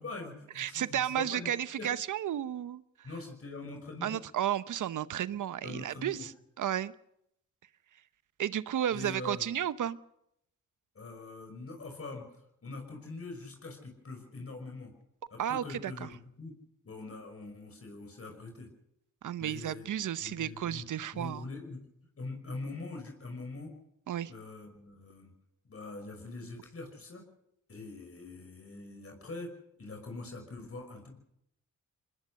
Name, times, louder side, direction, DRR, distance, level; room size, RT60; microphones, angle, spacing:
voice 1, 0.0-1.9 3.0-4.2 5.6-6.3 8.9-9.4 10.9-12.3 12.6-14.9 15.3-16.6 16.8-18.7 19.4-19.9 20.2-20.9 21.1-21.8 22.2-23.7 24.3-25.3 25.7-27.2 27.7-29.5 29.8-31.2, left 3 dB, 45° left, 3 dB, 5.6 m, -43 dB
voice 2, 0.6-2.8 4.0-6.3 6.6-6.9 8.4-10.0 15.4-16.1 19.2-21.5 24.1-24.3, right 10 dB, 70° right, 16 dB, 0.9 m, -33 dB
22.0 x 20.0 x 6.4 m, 0.78 s
supercardioid pair, 55°, 32 cm